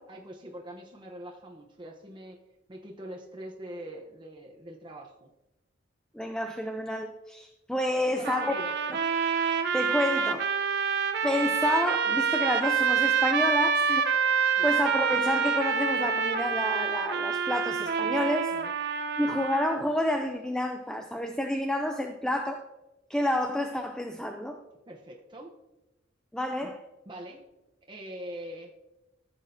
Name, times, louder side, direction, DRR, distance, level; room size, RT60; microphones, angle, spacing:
voice 1, 0.1-2.4 2.7-5.3 8.0-8.8 14.5-14.7 18.5-18.7 24.9-25.5 26.6-26.7 27.1-27.5 27.9-28.7, right 1 dB, 25° right, 0 dB, 0.9 m, -43 dB
voice 2, 6.1-8.5 8.9-9.0 9.7-10.8 11.2-18.5 19.2-22.7 23.1-24.6 26.3-26.8, left 1 dB, 5° left, 5 dB, 0.5 m, -29 dB
sound 1, 8.2-19.8, right 6 dB, 60° right, 0.8 m, -27 dB
14.5 x 7.3 x 2.8 m, 0.99 s
head